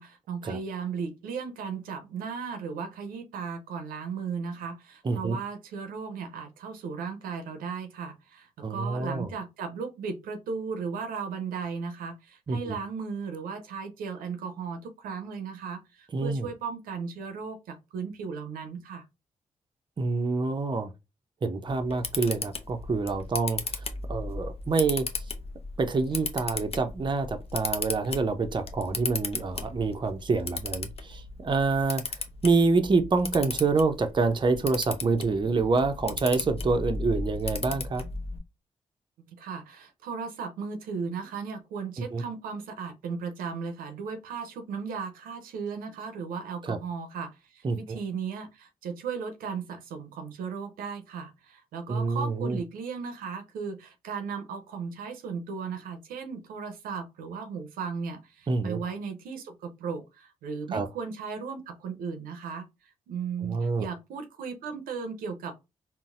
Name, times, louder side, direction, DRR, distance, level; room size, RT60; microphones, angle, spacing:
voice 1, 0.0-19.0 39.3-65.5, right 5 dB, 80° right, 0.6 m, -36 dB
voice 2, 5.0-5.4 8.6-9.3 12.5-12.8 16.1-16.5 20.0-20.9 21.4-23.6 24.1-25.1 25.8-32.0 32.4-38.0 42.1-42.2 46.7-46.8 47.6-48.0 51.9-52.6 58.5-58.8 60.7-60.9 63.4-63.9, right 4 dB, 35° right, 0.5 m, -27 dB
Camera, 21.7-38.4, left 4 dB, 45° left, 0.6 m, -36 dB
3.9 x 2.0 x 2.4 m
hypercardioid pair, 45°, 14 cm